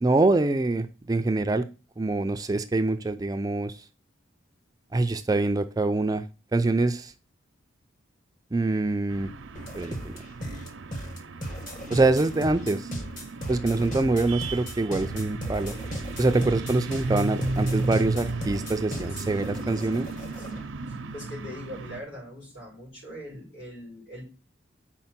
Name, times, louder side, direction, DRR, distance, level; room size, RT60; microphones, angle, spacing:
voice 1, 0.0-1.6 2.0-3.7 4.9-6.2 6.5-7.1 8.5-9.3 9.8-10.2 11.9-12.9 13.5-15.7 16.2-20.1, right 2 dB, 20° right, 8 dB, 0.3 m, -25 dB
sound 1, 9.1-22.0, right 2 dB, 75° right, 0.6 m, -35 dB
sound 2, 9.5-20.7, equal, 40° left, 1.3 m, -37 dB
voice 2, 18.7-20.6 20.9-24.3, left 1 dB, 75° left, -6 dB, 4.6 m, -43 dB
5.4 x 4.3 x 5.8 m, 0.33 s
head